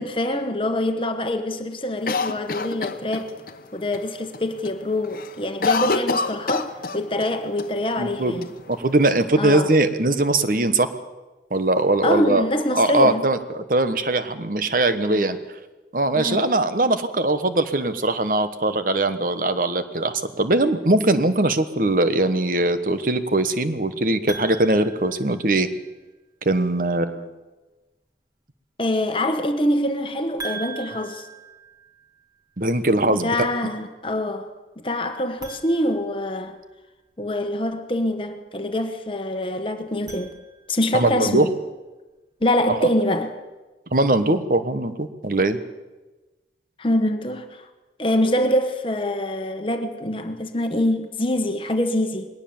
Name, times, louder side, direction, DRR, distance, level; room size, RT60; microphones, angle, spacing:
voice 1, 0.0-3.3 3.7-8.5 9.3-9.7 12.0-13.2 15.1-15.4 16.1-16.5 28.8-31.3 33.0-34.5 34.8-36.6 37.2-40.3 40.7-41.5 42.4-43.3 46.8-47.7 48.0-52.3, left 1 dB, 30° left, 1.2 m, -25 dB
Cough, 2.1-3.5 3.9-4.0 4.3-4.7 5.0-7.3 7.6-7.7 8.4-9.2, left 4 dB, 55° left, 1.0 m, -26 dB
voice 2, 8.0-8.3 8.7-10.9 11.5-12.4 12.7-15.4 15.9-25.7 26.4-27.3 32.6-33.5 40.9-41.5 42.7-42.9 43.9-45.6, right 2 dB, 50° right, 1.2 m, -21 dB
sound 1, 24.3-26.0 30.4-32.4 35.3-36.9 39.8-41.0, right 4 dB, 20° right, 2.1 m, -40 dB
21.0 x 18.0 x 7.2 m
head